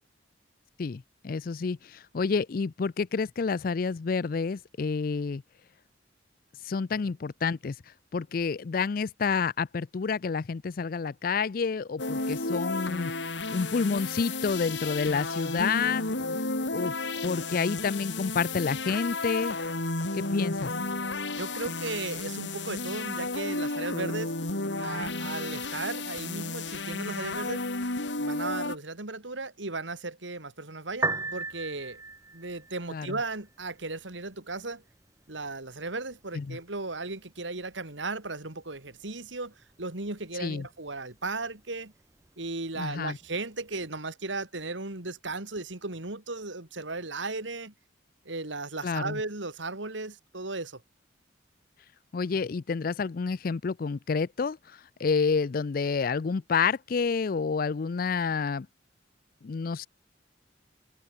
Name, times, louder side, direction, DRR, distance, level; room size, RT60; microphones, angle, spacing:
voice 1, 0.8-1.8 2.1-5.4 6.7-7.7 8.1-13.1 13.5-16.1 16.7-16.9 17.2-19.6 20.1-20.7 32.9-33.1 36.4-36.6 40.4-40.7 42.8-43.2 48.8-49.2 52.1-54.6 55.0-58.7 59.4-59.9, left 5 dB, 50° left, 0.4 m, -29 dB
sound 1, 12.0-28.8, left 3 dB, 75° left, 3.1 m, -32 dB
voice 2, 21.4-24.3 24.8-27.6 28.1-32.0 32.3-34.8 35.3-41.9 42.4-47.7 48.2-50.8, right 3 dB, 80° right, 3.0 m, -36 dB
Piano, 30.9-43.9, right 3 dB, 15° right, 1.1 m, -42 dB
head